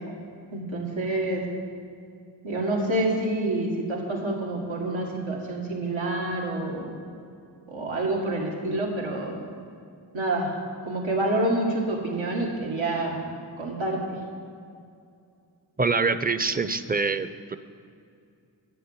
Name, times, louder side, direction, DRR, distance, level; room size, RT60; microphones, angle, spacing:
voice 1, 0.5-1.4 2.4-7.0 7.7-9.3 10.1-10.5 10.8-13.2 13.6-14.2, right 2 dB, 80° right, -2 dB, 2.0 m, -27 dB
voice 2, 15.8-17.6, right 4 dB, 20° right, 12 dB, 0.6 m, -25 dB
10.0 x 8.3 x 7.2 m, 2.4 s
cardioid pair, 45°, 46 cm